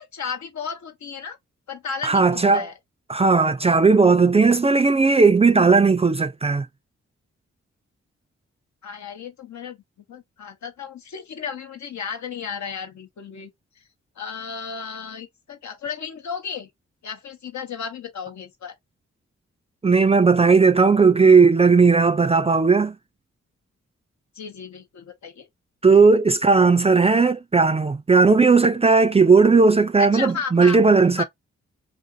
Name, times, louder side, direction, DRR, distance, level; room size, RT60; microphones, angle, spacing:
voice 1, 0.0-1.4 1.7-2.7 8.8-9.8 10.1-13.5 14.2-16.7 17.0-18.7 24.4-25.5 30.0-30.8 31.2-31.3, left 6 dB, 70° left, 0.8 m, -34 dB
voice 2, 2.0-2.7 3.1-6.7 19.8-23.0 25.8-31.2, right 4 dB, 20° right, 0.3 m, -16 dB
2.5 x 2.4 x 2.6 m
supercardioid pair, 40°, 30 cm